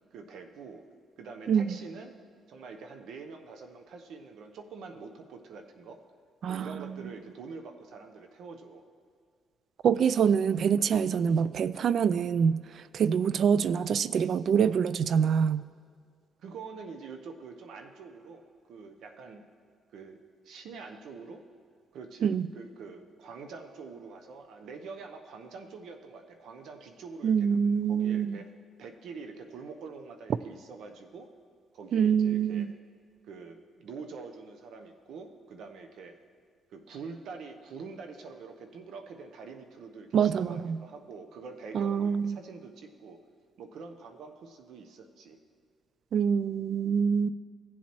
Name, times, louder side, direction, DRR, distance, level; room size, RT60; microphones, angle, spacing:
voice 1, 0.1-0.8 1.2-2.1 2.5-6.0 6.5-8.8 16.4-19.4 19.9-21.4 21.9-28.5 28.8-31.3 31.7-32.7 33.3-36.2 36.7-43.2 43.6-45.4, right 4 dB, 75° right, 6 dB, 0.8 m, -45 dB
voice 2, 1.5-1.8 6.4-7.0 9.8-15.7 22.2-22.5 27.2-28.4 31.9-32.7 40.1-40.8 41.7-42.4 46.1-47.3, right 7 dB, 60° right, 17 dB, 0.3 m, -25 dB
16.5 x 7.3 x 3.0 m, 2.1 s
cardioid pair, 90°, 0 cm